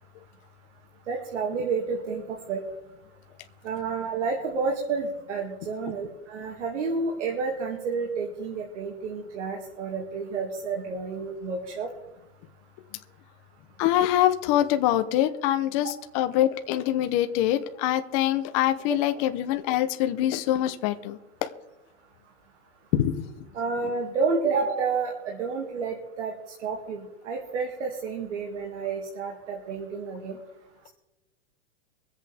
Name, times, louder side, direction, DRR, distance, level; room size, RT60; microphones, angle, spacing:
voice 1, 1.1-2.2 2.5-2.6 3.6-11.9 23.5-26.3 26.6-30.4, right 4 dB, 85° right, 0 dB, 2.4 m, -30 dB
voice 2, 13.8-21.5 22.9-23.3, left 12 dB, 30° left, 8 dB, 0.8 m, -24 dB
24.0 x 8.2 x 3.5 m, 1.0 s
supercardioid pair, 170°, 35 cm